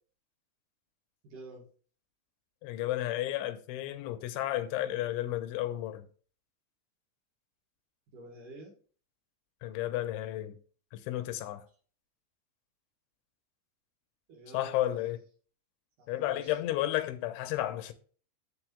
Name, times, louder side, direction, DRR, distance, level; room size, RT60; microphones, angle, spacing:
voice 1, 1.2-1.6 8.1-8.8 14.3-14.8 16.0-16.6, right 1 dB, 50° right, 3.2 m, -48 dB
voice 2, 2.6-6.1 9.6-10.6 10.9-11.7 14.5-15.2 16.1-17.9, left 14 dB, 90° left, 3.1 m, -32 dB
7.8 x 7.2 x 3.3 m
omnidirectional pair, 5.4 m